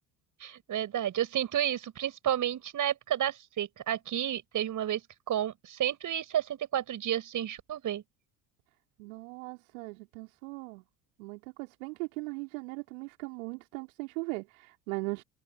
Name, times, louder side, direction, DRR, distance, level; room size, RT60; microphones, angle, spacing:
voice 1, 0.4-5.0 5.3-8.0, right 11 dB, 40° right, 6.0 m, -31 dB
voice 2, 9.0-10.8 11.2-15.2, right 27 dB, 65° right, 3.6 m, -39 dB
figure-of-eight pair, 60°, 45 cm